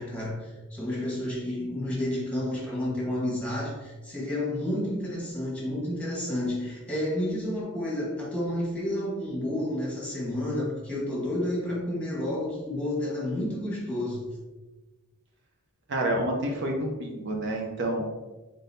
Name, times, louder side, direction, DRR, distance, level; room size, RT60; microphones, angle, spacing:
voice 1, 0.0-14.3, left 1 dB, 5° left, -5 dB, 1.2 m, -30 dB
voice 2, 15.9-18.1, right 1 dB, 50° right, 1 dB, 0.6 m, -28 dB
3.9 x 3.8 x 2.7 m, 1.2 s
head